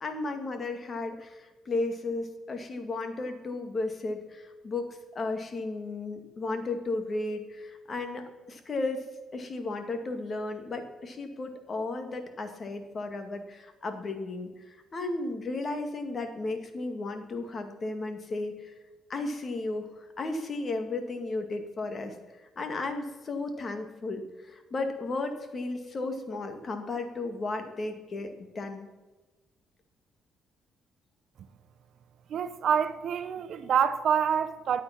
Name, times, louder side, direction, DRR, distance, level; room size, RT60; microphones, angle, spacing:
voice 1, 0.0-9.1 9.3-18.7 19.1-22.1 22.6-28.9, left 2 dB, 40° left, 1.9 m, -34 dB
voice 2, 32.3-34.8, right 8 dB, 65° right, 0.8 m, -27 dB
12.0 x 8.6 x 5.9 m
cardioid pair, 90°, 0 cm